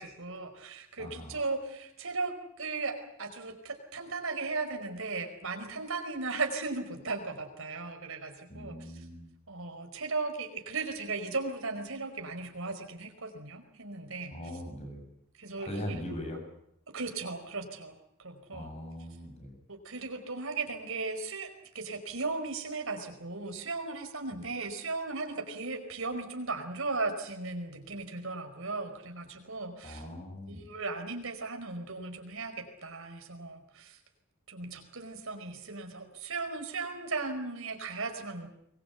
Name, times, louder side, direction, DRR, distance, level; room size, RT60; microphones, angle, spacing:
voice 1, 0.0-8.9 9.5-14.5 15.4-16.4 16.9-17.9 18.2-18.7 19.7-30.1 30.5-34.0 34.5-38.5, right 3 dB, 70° right, 6 dB, 4.9 m, -37 dB
voice 2, 1.0-1.4 8.5-9.3 14.3-15.0 15.6-16.4 18.5-19.5 24.3-24.5 29.8-30.6, left 1 dB, 30° left, 4 dB, 7.9 m, -40 dB
23.5 x 21.5 x 8.3 m, 0.76 s
head